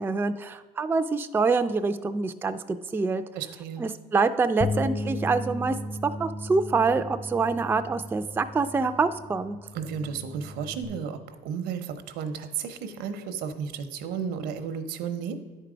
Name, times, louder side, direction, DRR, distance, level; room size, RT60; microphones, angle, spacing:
voice 1, 0.0-3.2 3.8-5.7 6.2-9.6, right 4 dB, 10° right, 9 dB, 0.3 m, -26 dB
voice 2, 3.3-3.8 9.7-15.4, right 7 dB, 85° right, 9 dB, 0.8 m, -33 dB
Bass guitar, 4.6-10.9, left 1 dB, 25° left, 0.7 m, -35 dB
10.0 x 4.6 x 5.0 m, 1.4 s
cardioid pair, 110°, 17 cm